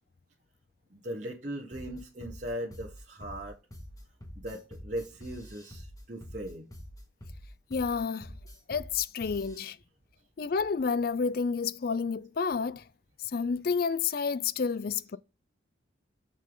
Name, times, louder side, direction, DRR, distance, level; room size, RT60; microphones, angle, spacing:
voice 1, 0.9-3.6 4.4-6.7, equal, 40° right, 1.1 m, -38 dB
sound 1, 1.7-9.7, equal, 20° left, 1.7 m, -46 dB
voice 2, 7.7-8.3 8.7-9.8 10.4-12.8 13.3-15.2, left 5 dB, 50° left, 0.4 m, -30 dB
6.7 x 6.2 x 3.8 m
head